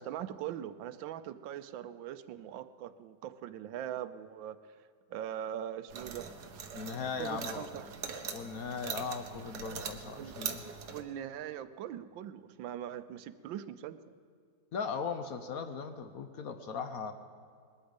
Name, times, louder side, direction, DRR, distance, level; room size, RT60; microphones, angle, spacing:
voice 1, 0.0-4.6 5.1-6.3 7.2-8.2 10.1-10.4 10.9-14.1, right 10 dB, 85° right, 13 dB, 1.4 m, -41 dB
sound 1, 5.9-11.0, right 6 dB, 60° right, 1.5 m, -42 dB
voice 2, 6.7-7.7 8.3-10.7 14.7-17.1, left 5 dB, 60° left, 8 dB, 1.0 m, -38 dB
20.5 x 13.0 x 5.3 m, 2.2 s
omnidirectional pair, 2.0 m